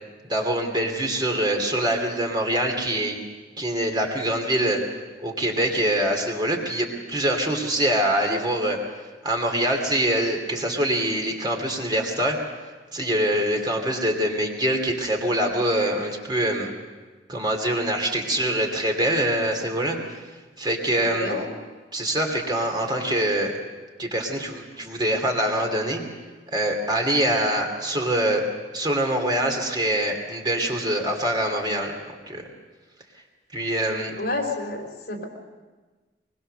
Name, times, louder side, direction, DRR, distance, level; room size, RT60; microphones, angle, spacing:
voice 1, 0.3-3.2 3.6-4.8 5.2-8.8 9.2-12.4 12.9-16.7 17.3-20.0 20.6-21.4 21.9-23.5 24.0-26.0 26.5-28.4 28.7-31.9 32.3-32.4 33.5-34.2, right 1 dB, 25° right, 2 dB, 2.7 m, -24 dB
voice 2, 20.9-21.4 34.2-35.2, left 2 dB, 55° left, 2 dB, 3.9 m, -29 dB
23.5 x 21.5 x 6.7 m, 1.3 s
head